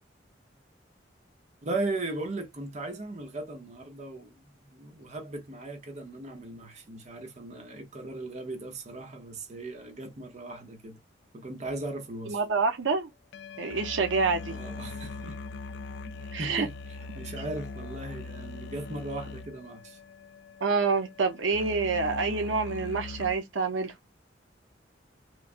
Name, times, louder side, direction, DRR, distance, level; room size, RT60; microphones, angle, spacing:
voice 1, 1.6-11.0 11.3-12.4 14.4-15.4 16.2-16.7 17.1-20.0, right 2 dB, 40° right, 0.7 m, -37 dB
sound 1, 11.7-11.8 13.3-23.3, left 3 dB, 65° left, 0.3 m, -41 dB
voice 2, 12.3-13.1 13.6-14.5 16.3-16.7 20.6-23.9, right 4 dB, 90° right, 0.7 m, -27 dB
3.1 x 2.3 x 2.4 m
head